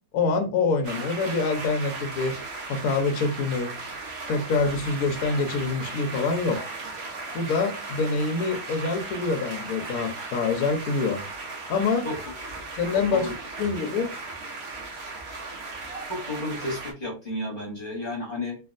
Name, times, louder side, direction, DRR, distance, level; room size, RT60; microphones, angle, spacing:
voice 1, 0.1-2.4 2.7-3.7 4.3-6.6 7.3-11.2 11.7-12.1 12.7-13.3 13.6-14.1, left 4 dB, 75° left, 0.8 m, -25 dB
sound 1, 0.8-16.9, right 3 dB, 60° right, 0.6 m, -37 dB
voice 2, 12.0-12.4 13.1-13.3 16.1-18.6, left 1 dB, 45° left, 0.7 m, -32 dB
3.4 x 2.3 x 2.4 m
omnidirectional pair, 2.1 m